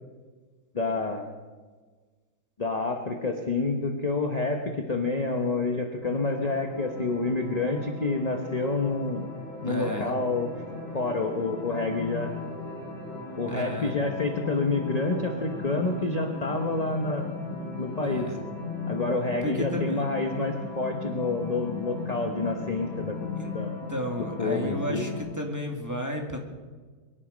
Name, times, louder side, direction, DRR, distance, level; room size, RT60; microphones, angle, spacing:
voice 1, 0.7-1.3 2.6-9.3 9.6-10.5 10.9-12.3 13.4-17.3 17.8-18.3 18.9-23.3 23.5-23.7 24.4-25.0, left 3 dB, 30° left, 3 dB, 0.7 m, -28 dB
sound 1, 6.0-25.2, left 4 dB, 25° right, 7.3 m, -37 dB
voice 2, 9.6-10.2 13.5-13.9 18.0-18.4 19.4-20.1 23.4-23.5 23.9-26.4, equal, 10° right, 1 dB, 1.7 m, -32 dB
23.0 x 11.5 x 5.1 m, 1.4 s
omnidirectional pair, 2.3 m